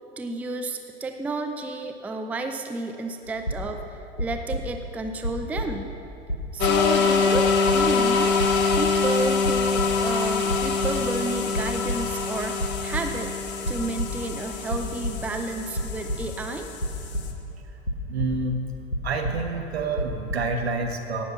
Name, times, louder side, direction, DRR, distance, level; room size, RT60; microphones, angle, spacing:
voice 1, 0.2-5.9 6.5-8.3 8.8-13.3 13.7-16.7, right 2 dB, 5° right, 5 dB, 0.5 m, -31 dB
sound 1, 3.3-3.9 4.2-4.9 5.2-6.0 6.3-7.0 7.3-8.1 8.4-9.2 9.4-10.2 10.5-11.1 11.4-12.3 12.6-13.4 13.6-14.4 14.7-15.3 15.7-17.6 17.9-18.6 18.9-19.7 19.9-20.3, left 1 dB, 90° left, 1.3 m, -31 dB
sound 2, 6.6-17.3, left 5 dB, 35° left, 1.4 m, -25 dB
voice 2, 18.1-18.6 19.0-21.2, right 3 dB, 70° right, 3 dB, 1.6 m, -28 dB
17.0 x 7.1 x 5.7 m, 2.8 s
figure-of-eight pair, 85°, 33 cm